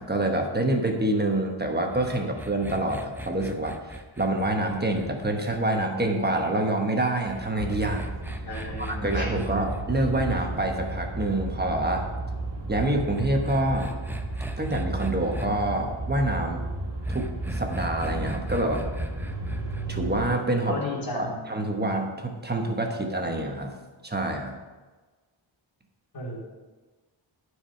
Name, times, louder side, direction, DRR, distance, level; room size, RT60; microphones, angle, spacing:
voice 1, 0.0-3.8 4.2-8.1 8.8-12.1 12.7-13.9 14.6-16.6 17.1-18.8 19.9-20.8 21.1-23.8 24.0-24.6, right 1 dB, 20° right, 2 dB, 1.1 m, -26 dB
sound 1, 1.9-6.3 7.3-11.4 12.7-15.5 17.0-19.9, equal, 5° right, 0.5 m, -38 dB
sound 2, 7.6-20.3, right 2 dB, 60° right, 1.6 m, -33 dB
voice 2, 8.5-9.3 20.7-21.4 26.1-26.4, left 2 dB, 45° left, -5 dB, 3.1 m, -33 dB
12.5 x 4.8 x 5.7 m, 1.3 s
wide cardioid pair, 135°, 47 cm